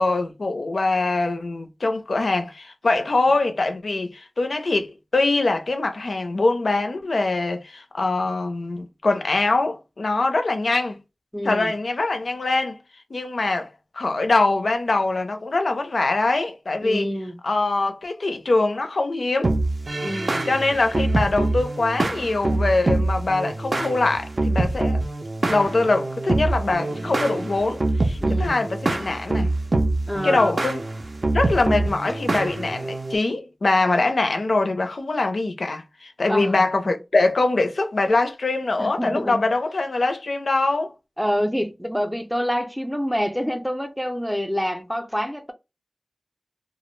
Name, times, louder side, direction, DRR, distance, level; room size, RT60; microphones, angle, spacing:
voice 1, 0.0-4.9 5.1-11.0 11.4-12.8 13.1-17.1 17.4-19.5 20.5-25.0 25.5-29.5 30.2-30.8 31.3-40.9, left 3 dB, 85° left, 0.4 m, -23 dB
voice 2, 11.3-11.7 16.8-17.4 20.0-20.5 28.2-28.6 30.1-30.5 36.3-37.0 38.8-39.4 41.2-45.5, equal, ahead, 0.4 m, -27 dB
sound 1, 19.4-33.2, right 2 dB, 60° right, 0.4 m, -25 dB
2.3 x 2.0 x 3.1 m
wide cardioid pair, 65°, 0 cm